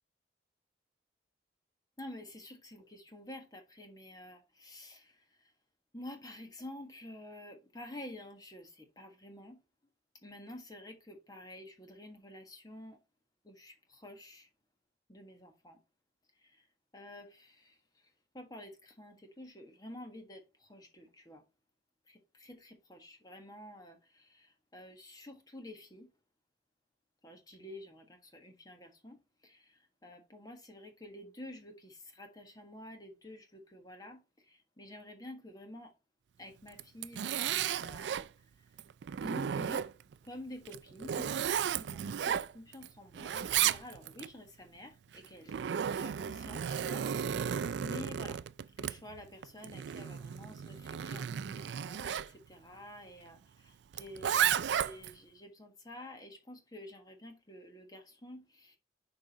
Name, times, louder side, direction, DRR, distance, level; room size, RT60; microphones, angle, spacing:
voice 1, 2.0-5.5 5.9-9.6 10.2-13.0 13.4-14.5 15.1-15.8 16.4-16.7 16.9-18.1 18.3-21.4 22.1-26.1 27.2-35.9 36.4-38.3 39.2-39.9 40.2-48.4 48.8-58.8, left 1 dB, 20° left, 1.4 m, -50 dB
Zipper (clothing), 36.7-38.3 38.8-40.1 40.6-42.9 43.1-44.3 45.1-52.3 53.9-55.1, right 9 dB, 80° right, 0.3 m, -34 dB
6.5 x 4.9 x 4.1 m
head